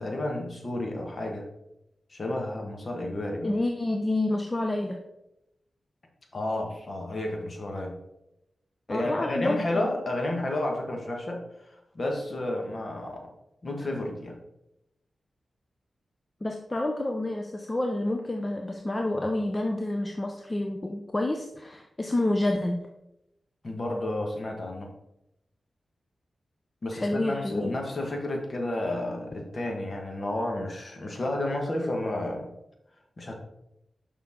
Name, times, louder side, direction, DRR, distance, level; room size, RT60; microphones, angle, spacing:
voice 1, 0.0-1.4 2.1-3.5 6.3-8.0 8.9-13.3 13.6-14.3 23.6-24.9 26.8-32.5 33.2-33.3, left 1 dB, 40° left, 1 dB, 1.4 m, -31 dB
voice 2, 3.4-5.0 8.9-9.9 16.4-22.8 26.9-27.7, left 1 dB, 20° left, 3 dB, 0.6 m, -28 dB
6.6 x 5.5 x 3.7 m, 0.86 s
wide cardioid pair, 100°, 0 cm